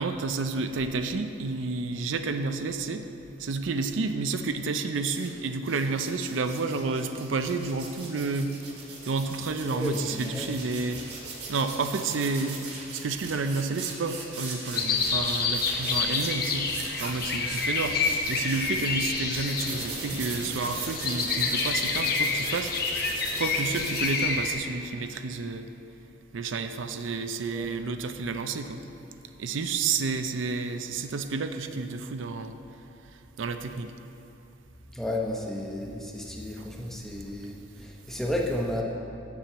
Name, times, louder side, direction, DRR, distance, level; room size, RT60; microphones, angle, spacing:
voice 1, 0.0-3.1 3.4-8.6 9.0-11.0 11.5-12.6 12.9-16.7 17.0-22.7 23.3-25.7 26.3-28.8 29.4-32.6 33.4-33.9, right 4 dB, 80° right, 8 dB, 0.5 m, -30 dB
sound 1, 5.0-5.3 5.6-18.9 19.3-24.1, right 4 dB, 55° right, 1.7 m, -40 dB
voice 2, 9.6-10.5 27.5-27.7 34.9-38.8, left 1 dB, ahead, -1 dB, 0.8 m, -32 dB
sound 2, 14.7-24.5, left 4 dB, 50° left, 0.8 m, -28 dB
7.5 x 7.2 x 6.7 m, 2.9 s
head